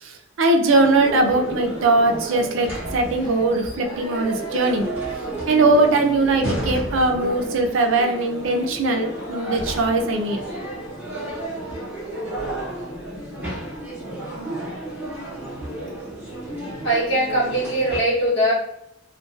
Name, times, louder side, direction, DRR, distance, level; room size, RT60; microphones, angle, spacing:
voice 1, 0.0-4.9 5.5-10.4, right 2 dB, 70° right, 4 dB, 0.4 m, -20 dB
sound 1, 0.7-18.0, right 1 dB, 10° right, 0.7 m, -32 dB
voice 2, 16.8-18.5, right 1 dB, 60° left, -6 dB, 1.0 m, -21 dB
2.4 x 2.2 x 2.4 m, 0.82 s
head